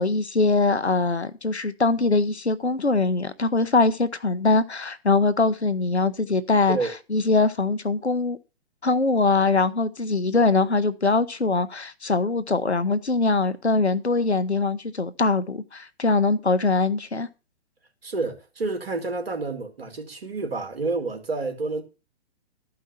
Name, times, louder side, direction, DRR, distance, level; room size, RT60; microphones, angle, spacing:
voice 1, 0.0-6.8 7.1-8.4 8.8-17.3, left 3 dB, 85° left, 1.1 m, -22 dB
voice 2, 18.0-21.8, right 3 dB, 65° right, 2.9 m, -29 dB
13.0 x 5.5 x 6.8 m
figure-of-eight pair, 125°, 32 cm